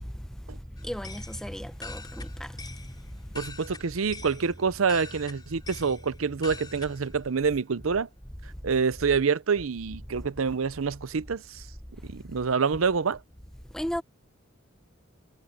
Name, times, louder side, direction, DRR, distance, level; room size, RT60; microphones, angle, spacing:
voice 1, 0.0-3.4 13.7-14.0, equal, 5° left, 0.8 m, -36 dB
sound 1, 0.8-7.2, left 2 dB, 20° left, 3.8 m, -44 dB
voice 2, 3.3-8.1 8.6-11.6 12.1-13.2, right 5 dB, 85° right, 0.7 m, -27 dB
head